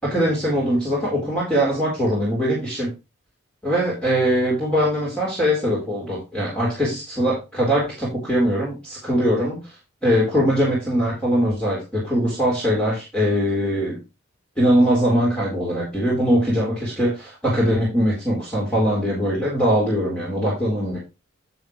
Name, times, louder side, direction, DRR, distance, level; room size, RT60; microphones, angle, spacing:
voice 1, 0.0-2.9 3.6-9.6 10.0-14.0 14.6-21.0, equal, 5° left, -5 dB, 4.1 m, -21 dB
11.0 x 6.9 x 3.2 m, 0.26 s
head